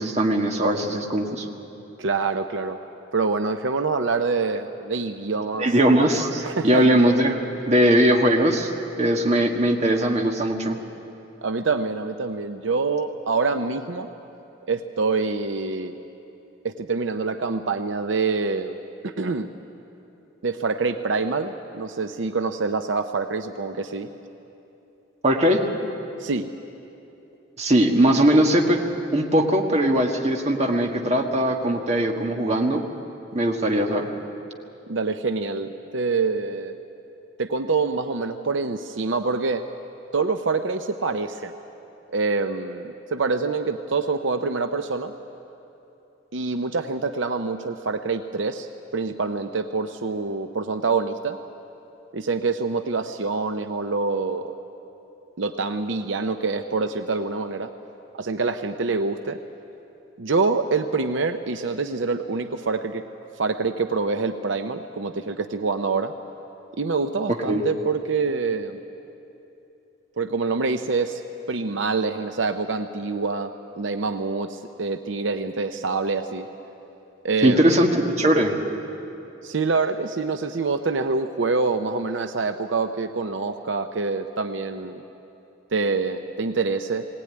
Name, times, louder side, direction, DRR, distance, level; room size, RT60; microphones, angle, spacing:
voice 1, 0.0-1.5 5.6-7.4 7.7-8.7 9.0-10.7 25.2-25.6 27.6-28.8 29.1-32.8 33.3-34.1 67.5-67.6 77.4-78.6, right 1 dB, 35° right, 2 dB, 1.6 m, -20 dB
voice 2, 2.0-2.8 3.1-5.7 6.4-6.9 11.4-14.1 14.6-16.0 16.6-18.8 19.0-19.5 20.4-24.1 26.2-26.5 34.9-36.8 37.4-39.6 40.1-41.5 42.1-45.1 46.3-51.4 52.1-54.5 55.4-57.7 58.2-59.4 60.2-63.0 63.4-66.1 66.8-68.8 70.2-71.2 71.5-76.5 77.2-77.7 79.4-85.0 85.7-87.0, right 4 dB, 75° right, 7 dB, 0.7 m, -26 dB
20.0 x 17.5 x 9.6 m, 2.9 s
head